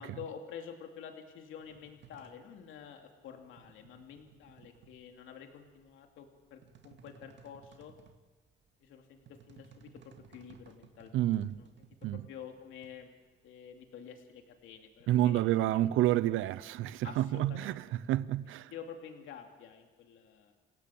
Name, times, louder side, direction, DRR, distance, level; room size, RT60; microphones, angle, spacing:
voice 1, 0.0-7.9 8.8-11.7 12.1-13.1 13.4-15.4 15.7-15.9 17.0-17.8 18.7-20.5, left 7 dB, 85° left, 2.7 m, -49 dB
sound 1, 1.6-16.3, right 6 dB, 65° right, 2.1 m, -60 dB
voice 2, 11.1-11.5 12.0-12.2 15.1-18.7, right 13 dB, 85° right, 0.7 m, -29 dB
28.5 x 17.0 x 7.7 m
cardioid pair, 90°, 20 cm